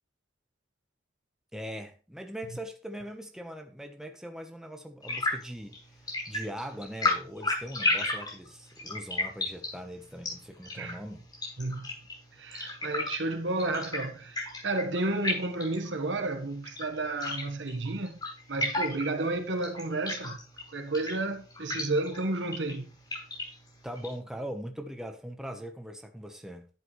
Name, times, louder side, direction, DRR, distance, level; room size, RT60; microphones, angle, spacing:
voice 1, 1.5-5.8 6.3-11.2 23.8-26.7, equal, 5° right, 1.0 m, -41 dB
sound 1, 5.0-24.2, left 2 dB, 20° left, 6.0 m, -35 dB
voice 2, 11.6-12.0 12.3-14.4 14.6-18.2 18.5-20.4 20.7-22.9, right 2 dB, 75° right, 1.4 m, -31 dB
11.5 x 7.8 x 3.2 m
head